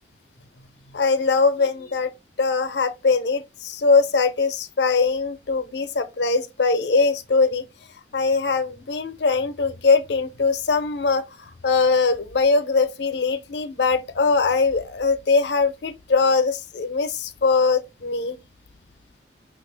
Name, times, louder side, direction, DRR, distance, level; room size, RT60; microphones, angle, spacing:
voice 1, 0.9-2.1 2.4-7.6 8.1-11.2 11.6-18.4, left 4 dB, 70° left, 0.6 m, -21 dB
5.7 x 2.5 x 3.3 m
head